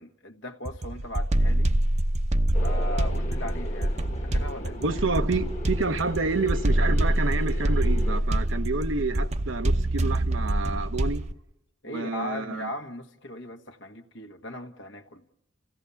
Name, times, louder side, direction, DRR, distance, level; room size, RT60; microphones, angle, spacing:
voice 1, 0.0-1.7 2.6-5.0 11.8-15.2, left 1 dB, 65° left, 1.4 m, -38 dB
sound 1, 0.7-11.3, right 1 dB, 35° right, 0.8 m, -25 dB
sound 2, 2.5-8.2, left 1 dB, 40° left, 1.5 m, -40 dB
voice 2, 4.8-11.2 11.9-12.7, right 3 dB, 85° right, 1.0 m, -29 dB
30.0 x 16.5 x 7.0 m
head